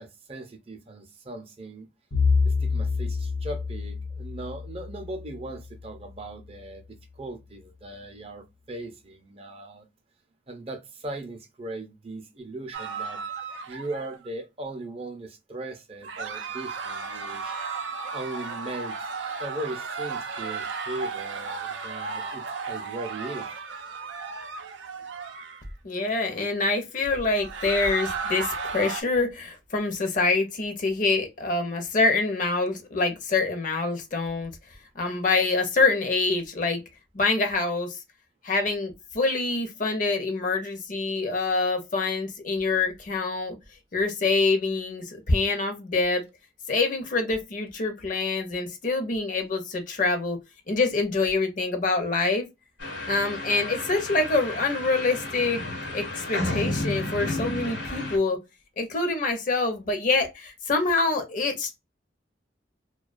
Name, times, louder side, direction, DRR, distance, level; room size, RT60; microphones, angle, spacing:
voice 1, 0.0-1.9 2.4-9.9 10.5-13.2 13.7-17.6 18.1-19.1 19.4-23.5, right 2 dB, 30° right, 0.5 m, -38 dB
Bowed string instrument, 2.1-6.3, left 4 dB, 90° left, 1.0 m, -28 dB
sound 1, 12.7-14.3 16.0-25.7 27.3-29.0, right 5 dB, 85° right, 0.4 m, -34 dB
voice 2, 25.8-34.5 35.0-36.8 37.1-38.0 38.4-43.6 43.9-46.2 46.7-50.4 50.7-52.5 53.1-55.6 55.9-58.4 58.8-61.8, left 3 dB, 45° left, 0.6 m, -25 dB
sound 2, 52.8-58.2, left 2 dB, 70° left, 1.1 m, -32 dB
2.3 x 2.2 x 2.4 m
head